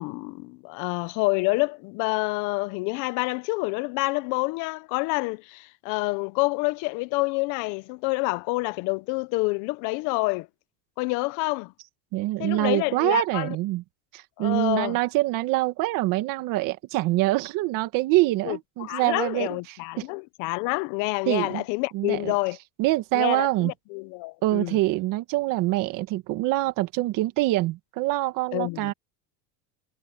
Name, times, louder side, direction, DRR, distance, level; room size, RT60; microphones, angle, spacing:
voice 1, 0.0-10.5 11.0-11.7 12.4-13.6 14.4-15.0 18.4-22.6 23.1-24.8 28.5-28.9, left 25 dB, 45° left, 0.5 m, -28 dB
voice 2, 12.1-13.8 14.1-19.8 21.3-21.6 21.9-22.3 22.8-23.7 24.4-28.9, right 18 dB, 45° right, 1.7 m, -25 dB
cardioid pair, 160°, 43 cm